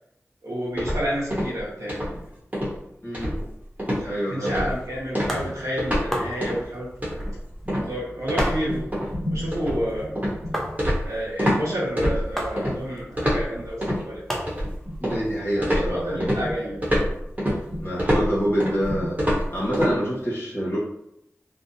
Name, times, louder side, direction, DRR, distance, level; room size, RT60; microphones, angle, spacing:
voice 1, 0.4-2.2 4.0-6.9 7.8-8.9 9.3-10.2 11.0-14.4 15.4-16.9, equal, 80° right, -7 dB, 0.6 m, -30 dB
sound 1, 0.8-1.6 1.9-2.2 2.5-2.8 3.1-3.5 3.8-4.1 4.5-4.8 5.1-6.1 6.4-6.6 7.0-11.6 12.0-12.7 13.2-14.0 14.5-15.3 15.6-19.9, equal, 30° right, 0.9 m, -25 dB
voice 2, 3.0-3.4 4.0-4.7 15.0-16.3 17.8-19.1 19.5-20.8, equal, 50° left, -7 dB, 1.1 m, -26 dB
sound 2, 4.7-17.8, equal, 5° left, 0.6 m, -37 dB
2.6 x 2.1 x 2.6 m, 0.80 s
cardioid pair, 45°, 5 cm